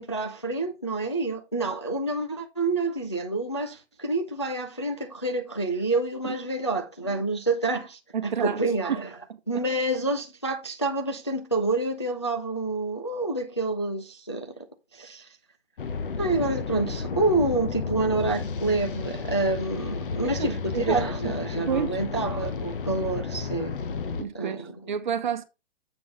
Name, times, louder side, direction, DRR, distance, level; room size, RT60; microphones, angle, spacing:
voice 1, 0.0-9.1 9.5-14.5 14.9-15.3 16.2-23.8 24.3-24.7, right 2 dB, 25° left, 0.4 m, -28 dB
voice 2, 8.1-8.6 8.9-9.0 9.5-9.6 20.2-21.0 21.2-21.3 21.7-22.0 24.1-25.4, right 7 dB, 40° right, 0.9 m, -30 dB
sound 1, 15.8-24.2, left 5 dB, 50° left, 0.9 m, -32 dB
7.7 x 5.8 x 3.7 m
hypercardioid pair, 175°, 35 cm